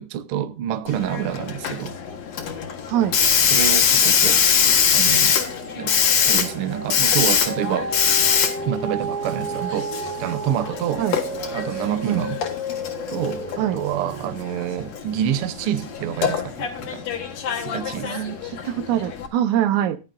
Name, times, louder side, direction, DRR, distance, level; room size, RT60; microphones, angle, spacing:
voice 1, 0.0-1.9 3.5-4.4 4.9-5.4 5.7-6.0 6.2-8.0 8.6-9.9 10.2-11.0 11.5-12.4 13.1-17.0 17.6-18.2, right 10 dB, 70° right, 1.4 m, -27 dB
Hiss, 0.9-19.3, left 7 dB, 65° left, 2.6 m, -23 dB
sound 1, 3.2-3.6 4.0-16.5 17.0-17.1, right 2 dB, 50° right, 0.4 m, -34 dB
voice 2, 18.0-20.0, right 11 dB, 90° right, 2.3 m, -24 dB
15.5 x 10.5 x 2.5 m
omnidirectional pair, 3.4 m